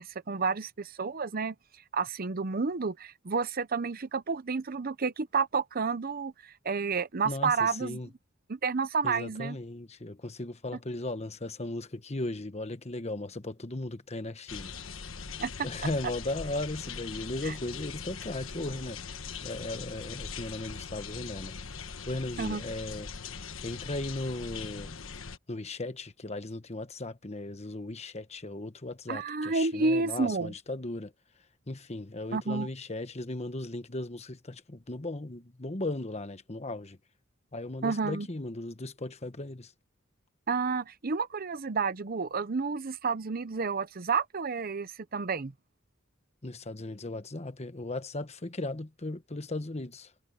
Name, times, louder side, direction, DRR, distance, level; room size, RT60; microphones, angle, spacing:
voice 1, 0.0-1.5 1.9-8.0 8.5-9.6 15.4-15.5 17.5-17.6 22.4-22.6 29.1-30.5 32.3-32.7 37.8-38.3 40.5-45.5, right 4 dB, 45° right, 0.8 m, -30 dB
voice 2, 7.2-8.1 9.0-14.7 15.6-19.0 19.4-24.9 25.5-31.1 31.7-37.0 37.5-39.7 46.4-50.1, left 2 dB, 35° left, 1.3 m, -37 dB
sound 1, 14.5-25.4, left 5 dB, 85° left, 1.3 m, -41 dB
head